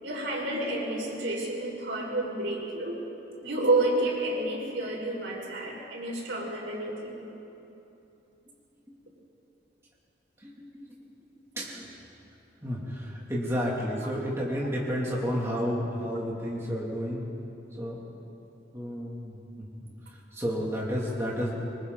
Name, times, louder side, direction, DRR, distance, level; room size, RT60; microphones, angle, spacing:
voice 1, 0.0-3.0 3.4-7.1 15.1-15.2, right 2 dB, 85° right, -3 dB, 5.8 m, -30 dB
voice 2, 7.1-7.4 8.9-9.0 10.4-11.0 11.5-11.9 12.6-17.2 17.8-18.0 18.7-21.5, equal, 15° right, -5 dB, 2.9 m, -32 dB
26.0 x 25.0 x 4.1 m, 2.9 s
head